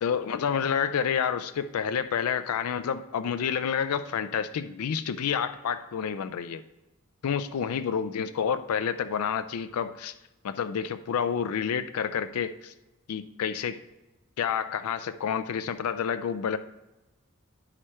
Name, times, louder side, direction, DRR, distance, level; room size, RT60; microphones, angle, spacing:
voice 1, 0.0-6.6 7.2-10.1 10.4-12.7 13.1-13.8 14.4-16.6, left 7 dB, 90° left, 11 dB, 0.4 m, -29 dB
10.0 x 4.9 x 4.3 m, 1.0 s
head